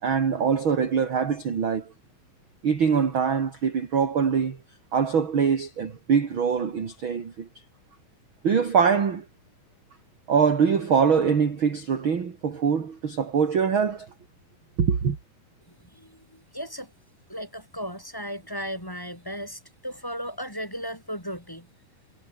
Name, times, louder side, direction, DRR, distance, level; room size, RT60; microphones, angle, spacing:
voice 1, 0.0-1.9 2.6-4.6 4.9-7.5 8.4-9.2 10.3-14.1 14.8-15.2, right 6 dB, 40° right, 2.8 m, -23 dB
voice 2, 15.9-16.9 17.3-21.7, equal, 5° left, 7.0 m, -36 dB
omnidirectional pair, 4.1 m